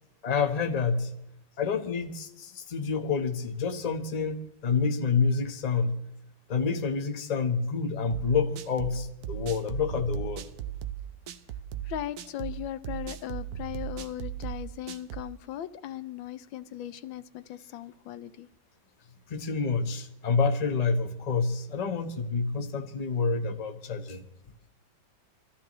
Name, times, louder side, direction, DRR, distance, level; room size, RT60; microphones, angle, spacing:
voice 1, 0.2-1.1 1.6-6.0 6.5-10.5 19.3-24.3, left 5 dB, 30° left, 0.8 m, -28 dB
sound 1, 8.1-15.3, right 11 dB, 60° right, 1.1 m, -37 dB
voice 2, 11.8-18.5, left 12 dB, 90° left, 1.5 m, -38 dB
24.5 x 14.5 x 3.1 m
omnidirectional pair, 2.0 m